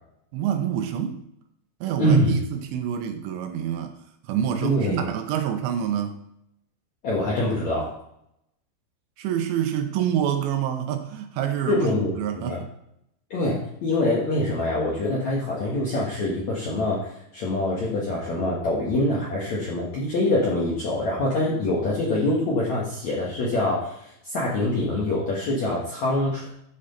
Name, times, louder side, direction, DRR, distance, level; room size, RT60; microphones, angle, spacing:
voice 1, 0.3-1.2 1.8-3.9 4.3-6.2 9.2-12.7, right 9 dB, 80° right, 6 dB, 2.9 m, -27 dB
voice 2, 2.0-2.4 4.6-5.1 7.0-7.9 11.7-12.6 13.3-26.5, left 1 dB, 65° left, -5 dB, 1.8 m, -25 dB
12.5 x 5.0 x 3.8 m, 0.77 s
omnidirectional pair, 5.3 m